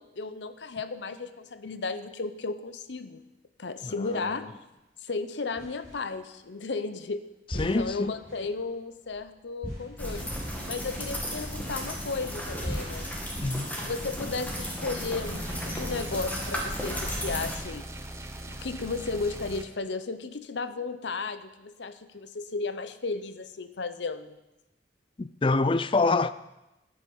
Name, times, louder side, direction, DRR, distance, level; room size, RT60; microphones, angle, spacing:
voice 1, 0.0-3.3 3.6-4.6 5.0-10.3 10.7-13.1 13.8-17.9 18.5-24.4, left 4 dB, 80° left, 0.8 m, -34 dB
voice 2, 3.8-4.3 7.6-8.1 13.4-13.7 25.2-26.3, left 3 dB, 30° left, 0.4 m, -26 dB
sound 1, 4.0-4.7 5.6-6.5 7.5-12.0 12.6-14.6, equal, 55° left, 6.0 m, -41 dB
sound 2, 10.0-17.5, equal, 10° left, 2.1 m, -34 dB
sound 3, 15.3-19.7, right 1 dB, 15° right, 1.0 m, -41 dB
13.5 x 9.7 x 5.4 m
head